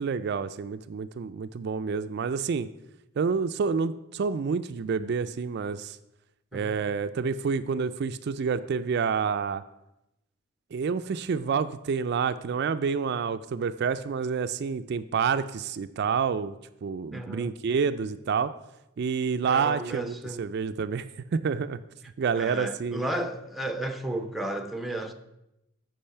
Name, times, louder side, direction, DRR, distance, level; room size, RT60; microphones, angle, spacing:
voice 1, 0.0-2.7 3.2-6.0 6.5-9.6 10.7-16.6 16.8-18.5 19.0-21.8 22.2-23.0, right 5 dB, 55° right, 0.4 m, -28 dB
voice 2, 6.5-6.8 17.1-17.5 19.4-20.4 22.3-25.1, right 1 dB, ahead, 0.6 m, -33 dB
8.6 x 5.4 x 5.6 m
head